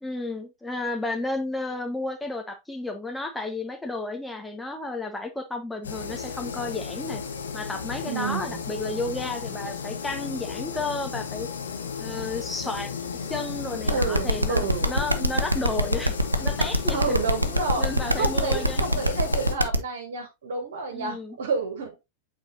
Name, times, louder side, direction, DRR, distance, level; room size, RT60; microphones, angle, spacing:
voice 1, 0.0-7.2 7.5-11.5 12.0-12.9 13.3-17.1 17.8-19.0 20.9-21.4, left 2 dB, 5° left, 1.3 m, -32 dB
sound 1, 5.8-19.5, left 6 dB, 70° left, 1.2 m, -34 dB
voice 2, 8.1-8.6 13.9-14.9 16.9-22.0, right 4 dB, 60° right, 1.8 m, -30 dB
sound 2, 13.9-19.8, right 1 dB, 80° right, 0.7 m, -22 dB
8.6 x 4.4 x 2.7 m
figure-of-eight pair, 90°, 0 cm